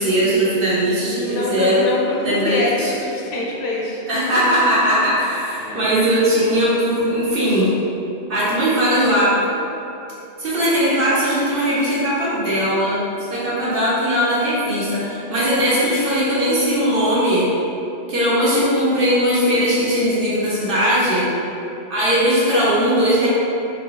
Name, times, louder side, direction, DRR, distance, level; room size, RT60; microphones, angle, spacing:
voice 1, 0.0-1.9 2.2-2.9 4.1-7.7 8.3-9.4 10.4-13.0 13.3-17.5 18.1-21.2 21.9-23.3, equal, 55° right, -9 dB, 1.1 m, -19 dB
voice 2, 1.1-4.0 5.6-5.9, left 2 dB, 70° left, -3 dB, 0.8 m, -25 dB
3.9 x 2.3 x 3.9 m, 2.8 s
omnidirectional pair, 1.2 m